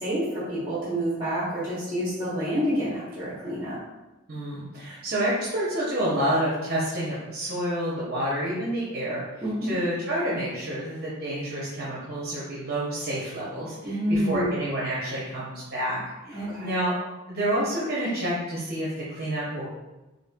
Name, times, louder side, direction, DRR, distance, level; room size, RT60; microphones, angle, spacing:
voice 1, 0.0-3.8 9.4-9.7 13.8-14.5 16.3-16.7, equal, 25° right, -8 dB, 0.9 m, -28 dB
voice 2, 4.3-9.2 9.6-16.0 16.2-16.9 17.3-19.7, right 1 dB, 50° right, -7 dB, 0.7 m, -29 dB
4.2 x 2.6 x 2.2 m, 1.0 s
head